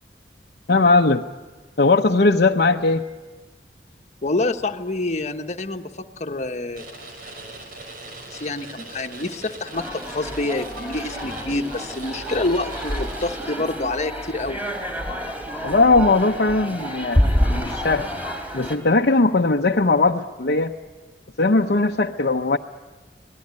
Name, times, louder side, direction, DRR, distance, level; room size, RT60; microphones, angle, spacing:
voice 1, 0.7-1.2 1.8-3.1 15.6-17.2 17.5-18.1 18.5-20.7 21.4-22.6, left 3 dB, 60° left, 0 dB, 0.8 m, -19 dB
voice 2, 4.2-6.8 8.3-14.6, left 2 dB, 40° left, 6 dB, 1.3 m, -27 dB
sound 1, 6.8-14.0, right 2 dB, 55° right, 6.0 m, -40 dB
sound 2, 9.7-18.8, equal, 10° right, 3.6 m, -27 dB
26.0 x 18.5 x 9.6 m, 1.3 s
head